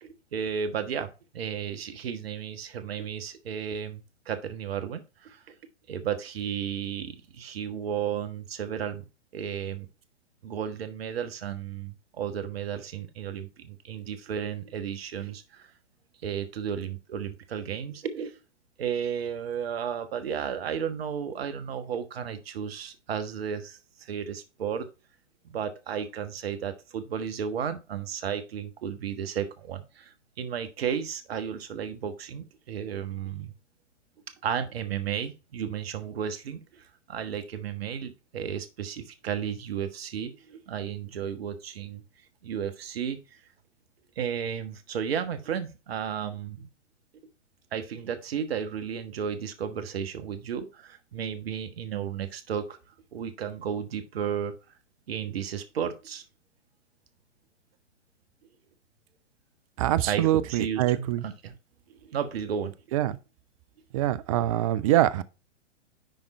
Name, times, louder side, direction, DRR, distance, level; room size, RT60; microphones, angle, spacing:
voice 1, 0.0-5.5 5.9-9.1 9.3-9.9 10.4-15.7 16.2-18.4 18.8-24.9 25.4-33.5 34.4-42.0 42.4-43.2 44.2-46.7 47.7-52.8 53.1-54.5 55.1-56.2 60.1-61.5 62.0-62.7, right 8 dB, 55° right, 1.3 m, -33 dB
voice 2, 59.8-61.2 62.9-63.2 63.9-65.2, right 13 dB, 30° right, 0.5 m, -24 dB
11.0 x 3.8 x 4.3 m
figure-of-eight pair, 115°, 36 cm